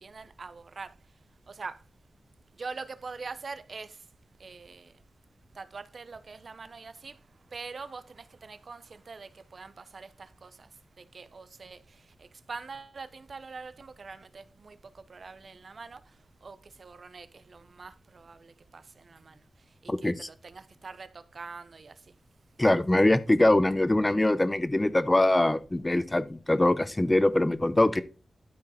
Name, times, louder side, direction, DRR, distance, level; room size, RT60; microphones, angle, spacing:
voice 1, 0.0-0.9 1.5-1.8 2.6-3.9 4.4-4.9 5.6-7.2 7.5-10.5 11.1-11.8 12.5-14.8 15.1-16.0 16.4-19.3 20.0-21.9, right 4 dB, 55° right, 0.7 m, -43 dB
voice 2, 22.6-28.0, left 1 dB, 15° left, 0.7 m, -23 dB
12.0 x 4.7 x 4.2 m
wide cardioid pair, 110°, 0 cm